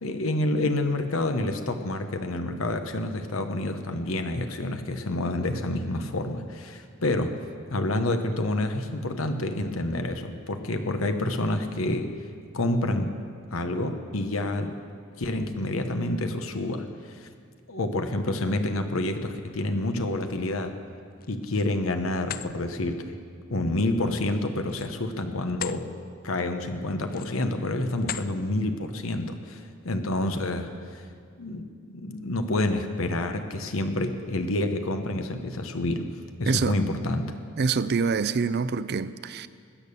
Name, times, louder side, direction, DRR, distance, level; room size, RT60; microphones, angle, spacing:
voice 1, 0.0-7.4 7.7-12.1 12.5-13.1 13.5-14.7 15.2-17.3 17.7-20.8 21.3-23.1 23.5-25.9 26.2-31.0 31.4-31.6 31.9-36.1 36.4-37.3, left 1 dB, 85° left, 1.0 m, -28 dB
sound 1, 21.1-21.7 22.1-22.5 24.6-25.8 26.3-26.5 27.0-27.5 28.0-28.3, left 10 dB, 45° left, 0.4 m, -37 dB
voice 2, 36.5-36.8 37.6-39.5, right 5 dB, 50° right, 0.5 m, -26 dB
20.5 x 8.5 x 6.9 m
head